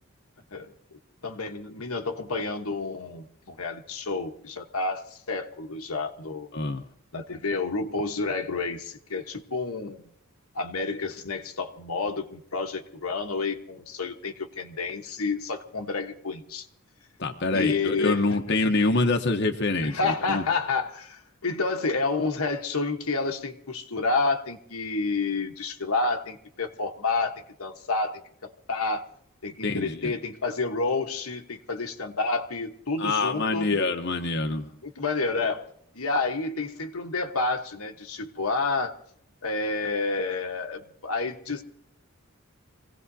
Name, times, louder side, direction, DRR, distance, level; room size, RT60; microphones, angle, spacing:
voice 1, 1.2-6.5 7.1-10.0 10.5-16.7 17.5-18.6 19.8-29.1 29.4-33.7 34.8-35.7 35.9-39.0 39.4-41.6, left 3 dB, 85° left, 4 dB, 1.2 m, -29 dB
voice 2, 6.5-6.8 17.2-20.4 29.6-30.1 33.0-34.7, left 3 dB, 55° left, 4 dB, 0.9 m, -25 dB
26.5 x 17.0 x 2.8 m, 0.70 s
head